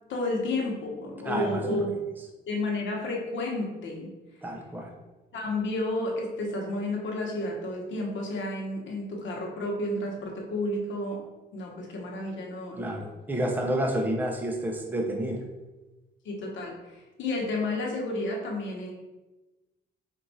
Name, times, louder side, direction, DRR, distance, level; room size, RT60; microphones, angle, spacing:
voice 1, 0.1-1.9 2.5-4.1 5.3-11.2 11.5-12.9 16.2-18.9, left 2 dB, 70° left, -1 dB, 1.1 m, -31 dB
voice 2, 1.2-1.9 4.4-4.9 12.8-15.4, right 1 dB, 10° right, 1 dB, 0.6 m, -29 dB
4.5 x 2.5 x 4.1 m, 1.1 s
cardioid pair, 90°, 20 cm